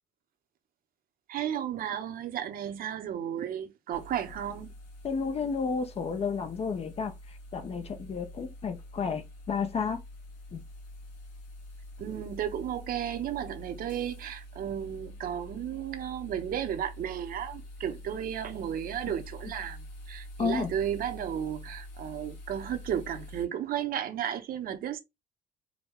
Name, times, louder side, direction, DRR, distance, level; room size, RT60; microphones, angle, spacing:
voice 1, 1.3-4.7 12.0-25.0, right 9 dB, 60° right, 0.8 m, -34 dB
sound 1, 3.9-23.5, left 1 dB, 80° left, 2.4 m, -46 dB
voice 2, 5.0-10.0 10.5-10.6 19.1-19.2 20.4-20.7, left 5 dB, 35° left, 0.7 m, -32 dB
4.8 x 2.2 x 3.5 m
cardioid pair, 110°, 17 cm